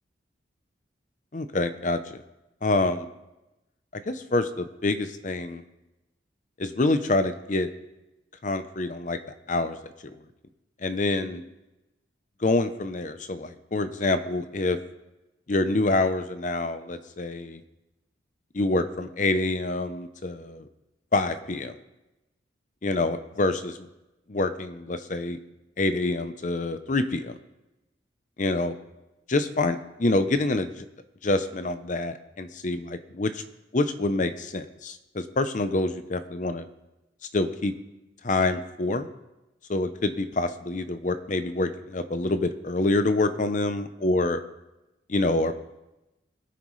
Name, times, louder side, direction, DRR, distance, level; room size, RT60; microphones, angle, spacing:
voice 1, 1.3-2.2 2.6-3.1 3.9-5.6 6.6-7.7 8.4-9.2 9.5-10.1 10.8-11.4 12.4-14.8 15.5-17.6 18.5-20.7 21.1-21.7 22.8-23.7 24.3-25.4 25.8-27.3 28.4-28.7 29.3-30.8 31.2-33.4 33.7-36.7 37.3-37.7 38.2-39.1 39.7-44.4 45.1-45.6, left 2 dB, 40° left, 9 dB, 0.6 m, -26 dB
20.5 x 9.1 x 3.2 m, 0.98 s
head